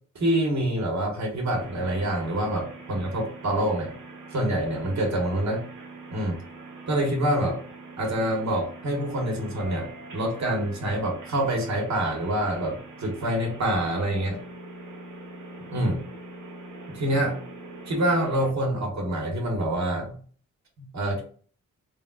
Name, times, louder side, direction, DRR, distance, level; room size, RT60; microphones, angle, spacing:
voice 1, 0.1-3.9 4.3-5.6 6.1-6.4 6.9-7.6 8.0-14.4 15.7-16.0 16.9-17.4 17.9-20.2 20.8-21.2, right 1 dB, 60° right, 1 dB, 1.2 m, -26 dB
sound 1, 1.5-18.5, right 2 dB, 80° right, 1.0 m, -43 dB
3.3 x 2.2 x 2.4 m, 0.44 s
cardioid pair, 60°, 32 cm